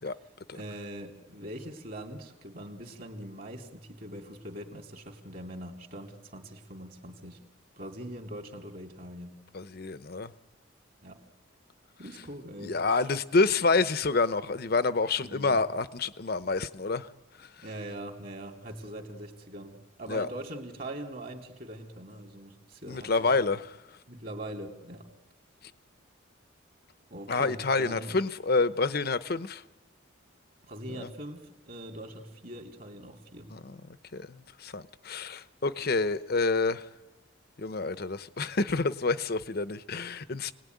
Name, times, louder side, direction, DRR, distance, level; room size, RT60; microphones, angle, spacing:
voice 1, 0.5-7.4 7.8-9.4 11.0-11.3 12.0-12.8 15.2-15.6 17.6-23.3 24.1-25.1 27.1-28.2 30.7-33.5, right 1 dB, 45° right, 2.9 m, -42 dB
voice 2, 9.5-10.3 12.6-17.1 17.4-17.6 20.1-20.3 22.9-23.8 27.3-29.6 31.0-31.1 33.5-36.9 37.6-40.5, left 3 dB, 50° left, 0.8 m, -28 dB
29.0 x 19.5 x 9.4 m
head